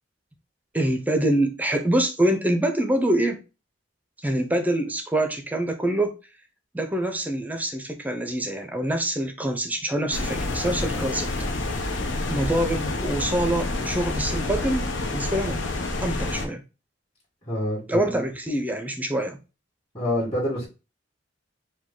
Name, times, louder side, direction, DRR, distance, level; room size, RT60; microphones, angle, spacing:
voice 1, 0.7-3.4 4.2-6.2 6.7-11.3 12.3-14.8 15.1-15.6 16.0-16.6 17.9-19.4, right 1 dB, 10° right, 0.5 m, -25 dB
sound 1, 10.1-16.5, left 2 dB, 80° left, 0.8 m, -28 dB
voice 2, 17.5-18.2 19.9-20.7, equal, 30° left, 1.9 m, -27 dB
5.0 x 2.3 x 3.7 m
head